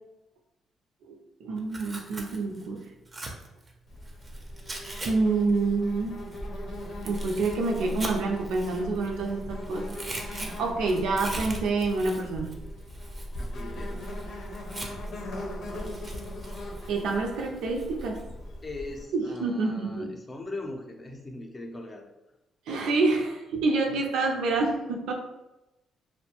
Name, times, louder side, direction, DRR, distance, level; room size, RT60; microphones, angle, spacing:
voice 1, 1.4-2.8 5.0-6.2 7.0-9.9 10.2-12.5 16.9-18.2 19.1-20.1 22.7-25.1, right 3 dB, 85° right, 1 dB, 0.4 m, -27 dB
Tearing, 1.6-5.1 5.4-9.3 9.6-15.2 15.7-18.2, right 2 dB, 25° right, 0.5 m, -42 dB
Insect, 3.9-19.0, left 1 dB, 70° left, 0.7 m, -39 dB
voice 2, 13.3-14.1 18.6-22.1, left 2 dB, 25° left, 2 dB, 0.5 m, -40 dB
2.5 x 2.1 x 2.8 m, 0.95 s
cardioid pair, 90°, 0 cm